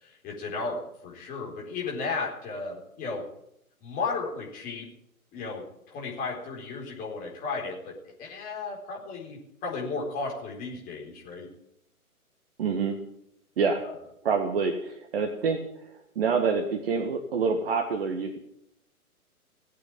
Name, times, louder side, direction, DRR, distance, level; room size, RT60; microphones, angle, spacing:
voice 1, 0.0-3.2 3.8-4.9 5.3-5.7 5.9-11.5 13.8-13.9, left 4 dB, 20° left, -2 dB, 4.2 m, -34 dB
voice 2, 12.6-13.0 13.6-13.8 14.2-18.4, right 5 dB, 40° right, 6 dB, 1.7 m, -27 dB
18.0 x 8.5 x 8.8 m, 0.75 s
figure-of-eight pair, 125°, 44 cm